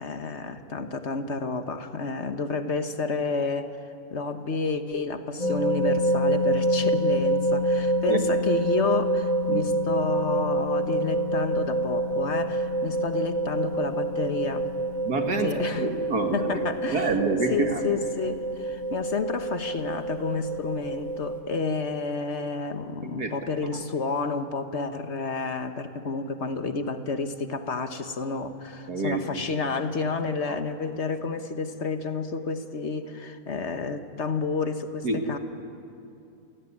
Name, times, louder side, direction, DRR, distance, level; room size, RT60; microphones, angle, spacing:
voice 1, 0.0-14.7 15.4-15.9 16.3-17.1 17.5-35.4, left 4 dB, 50° left, 8 dB, 1.4 m, -30 dB
sound 1, 5.4-21.4, right 1 dB, 20° right, 6.4 m, -27 dB
voice 2, 15.0-17.8 23.0-23.3 28.9-29.2 35.0-35.2, right 3 dB, 85° right, 4 dB, 2.6 m, -27 dB
28.5 x 17.5 x 9.9 m, 2.6 s
omnidirectional pair, 1.6 m